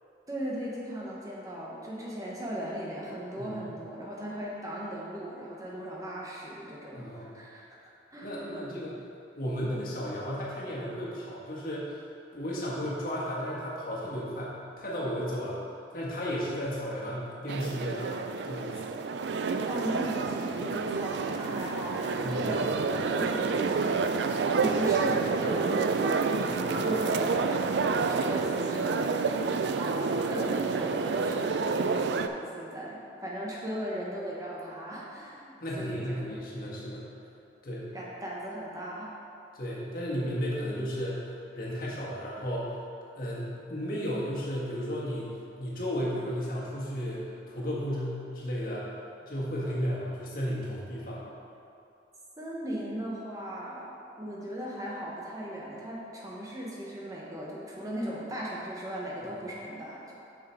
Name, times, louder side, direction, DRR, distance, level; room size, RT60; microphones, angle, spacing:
voice 1, 0.3-7.1 7.3-8.6 19.7-36.3 37.9-39.1 52.4-53.9 54.2-60.1, equal, 20° right, -5 dB, 1.0 m, -37 dB
voice 2, 6.9-7.3 8.2-9.0 9.4-11.9 12.3-15.6 15.9-18.2 18.4-18.8 22.2-22.7 26.4-26.8 35.6-37.0 37.6-37.9 39.6-41.2 41.5-42.8 43.1-45.3 45.6-48.8 49.2-51.2, equal, 50° left, -6 dB, 1.7 m, -34 dB
sound 1, 17.5-32.3, right 4 dB, 70° right, 0.4 m, -29 dB
7.1 x 6.1 x 4.5 m, 2.7 s
head